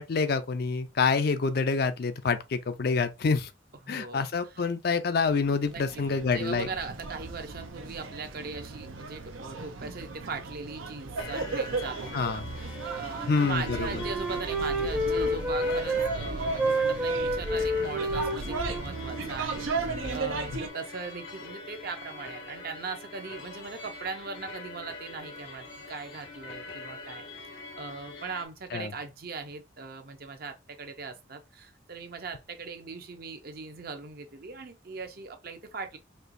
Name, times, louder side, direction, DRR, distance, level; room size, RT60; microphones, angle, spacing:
voice 1, 0.0-3.5 3.9-6.7 12.1-12.5 13.3-13.9 28.7-28.9, left 4 dB, 50° left, 0.4 m, -27 dB
voice 2, 3.8-4.2 4.5-4.6 5.7-12.4 12.9-27.3 27.8-36.0, right 4 dB, 50° right, 0.6 m, -40 dB
sound 1, 5.2-20.7, right 3 dB, 85° right, 0.7 m, -36 dB
sound 2, 11.2-28.5, left 3 dB, 75° left, 1.0 m, -43 dB
Wind instrument woodwind instrument, 12.7-16.1 16.4-20.3, right 1 dB, 5° right, 0.6 m, -30 dB
4.4 x 2.9 x 2.5 m
head